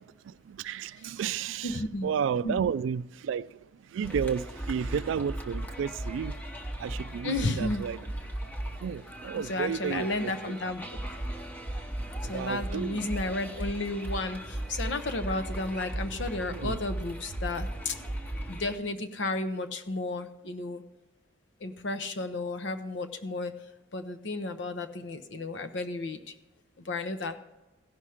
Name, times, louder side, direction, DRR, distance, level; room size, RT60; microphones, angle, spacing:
voice 1, 0.3-6.4 6.8-8.0 8.8-10.6 12.1-13.1 16.5-16.8, right 7 dB, 80° right, 0.3 m, -32 dB
voice 2, 1.6-2.1 2.4-2.6 7.2-7.9 9.3-11.0 12.3-17.9 18.5-20.8 21.6-23.5 23.9-26.2 26.9-27.4, left 2 dB, 70° left, 0.7 m, -33 dB
sound 1, 4.0-18.8, right 1 dB, 10° left, 0.8 m, -37 dB
16.0 x 5.7 x 4.9 m
head